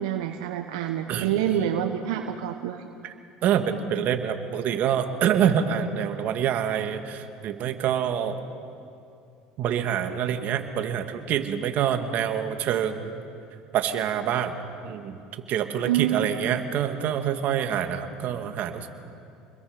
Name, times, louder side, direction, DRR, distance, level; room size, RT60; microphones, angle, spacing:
voice 1, 0.0-2.8 15.8-16.5, right 10 dB, 80° right, 5 dB, 1.1 m, -27 dB
voice 2, 3.4-8.4 9.6-13.1 13.7-14.5 14.8-15.2 15.5-18.9, right 9 dB, 55° right, 7 dB, 1.9 m, -26 dB
28.0 x 22.0 x 5.2 m, 2.5 s
hypercardioid pair, 85°, 3 cm